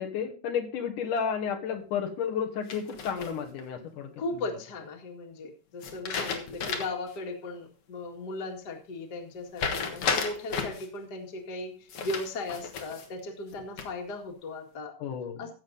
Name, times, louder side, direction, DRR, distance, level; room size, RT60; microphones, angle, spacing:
voice 1, 0.0-4.5 15.0-15.5, left 7 dB, 75° left, 3 dB, 2.8 m, -32 dB
sound 1, 2.7-3.6 5.8-7.1 7.5-7.6 9.6-10.9 11.9-13.1 13.5-14.1, left 5 dB, 50° left, 1.9 m, -33 dB
voice 2, 4.2-14.9 15.4-15.5, left 2 dB, 35° left, 2 dB, 2.2 m, -37 dB
15.0 x 7.4 x 4.0 m, 0.39 s
omnidirectional pair, 3.7 m